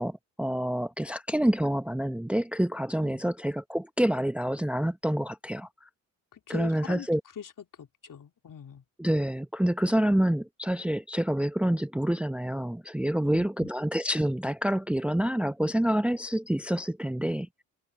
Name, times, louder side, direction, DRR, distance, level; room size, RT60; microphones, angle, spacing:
voice 1, 0.0-5.9 6.5-7.2 9.0-17.6, right 1 dB, 5° right, 0.9 m, -27 dB
voice 2, 6.3-7.1 7.4-7.5 7.8-8.8 13.2-13.7, left 8 dB, 50° left, 3.1 m, -42 dB
supercardioid pair, 65°, 42 cm